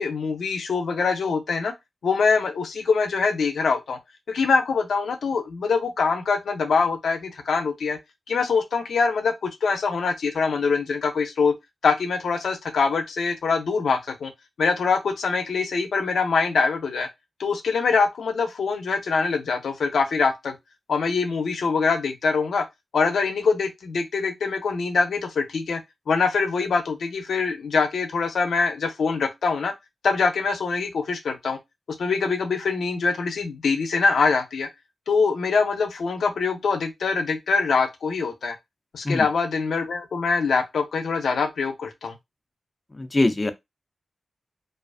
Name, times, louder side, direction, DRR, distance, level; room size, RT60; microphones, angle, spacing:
voice 1, 0.0-1.7 2.0-4.0 4.3-8.0 8.3-11.5 11.8-14.3 14.6-17.1 17.4-20.5 20.9-22.6 22.9-25.8 26.1-29.7 30.0-31.6 32.0-34.7 35.1-38.6 38.9-42.2, left 4 dB, 90° left, 0.4 m, -24 dB
voice 2, 42.9-43.5, left 2 dB, 25° left, 0.4 m, -22 dB
2.3 x 2.3 x 2.3 m
wide cardioid pair, 90°, 0 cm